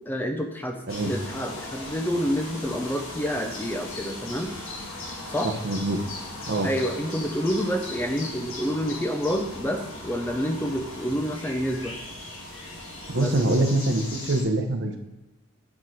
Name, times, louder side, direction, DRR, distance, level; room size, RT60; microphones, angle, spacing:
voice 1, 0.0-4.5 5.3-5.5 6.6-12.0 13.1-13.3, equal, 10° left, 4 dB, 0.5 m, -28 dB
sound 1, 0.9-14.4, left 2 dB, 75° left, 1.6 m, -38 dB
voice 2, 5.6-6.0 6.5-6.7 13.1-15.0, right 2 dB, 60° right, 5 dB, 0.9 m, -24 dB
8.8 x 3.8 x 4.5 m, 1.1 s
head